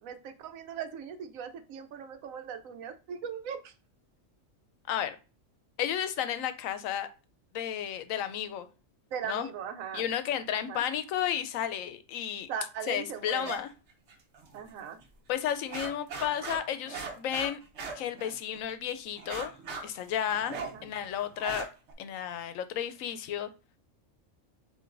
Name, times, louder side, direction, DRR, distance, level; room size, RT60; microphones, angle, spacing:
voice 1, 0.0-3.7 9.1-10.0 10.5-10.8 12.5-13.5 14.5-15.0 20.5-20.9, right 7 dB, 85° right, 7 dB, 1.1 m, -39 dB
voice 2, 5.8-7.1 7.5-8.7 9.3-9.5 9.9-12.5 12.9-13.7 15.3-17.6 18.0-19.5 19.8-21.7 22.0-23.5, left 10 dB, 80° left, 11 dB, 1.0 m, -32 dB
sound 1, 13.4-13.6 13.9-14.7 15.0-15.1 15.5-18.7 19.2-21.9, right 4 dB, 60° right, 1.0 m, -40 dB
7.5 x 2.8 x 2.5 m, 0.32 s
omnidirectional pair, 1.4 m